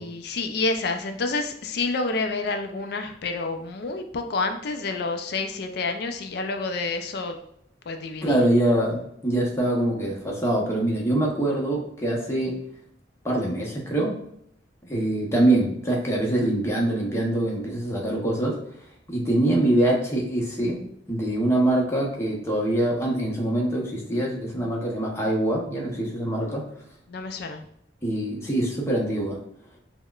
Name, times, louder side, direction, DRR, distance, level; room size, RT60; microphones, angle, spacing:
voice 1, 0.0-7.4 7.9-8.4 27.1-27.6, left 3 dB, 60° left, 6 dB, 0.4 m, -29 dB
voice 2, 8.2-12.6 13.2-14.1 14.8-18.6 19.1-20.8 21.1-26.7 28.0-29.4, right 1 dB, 15° left, -2 dB, 0.7 m, -24 dB
5.4 x 2.1 x 2.3 m, 0.71 s
head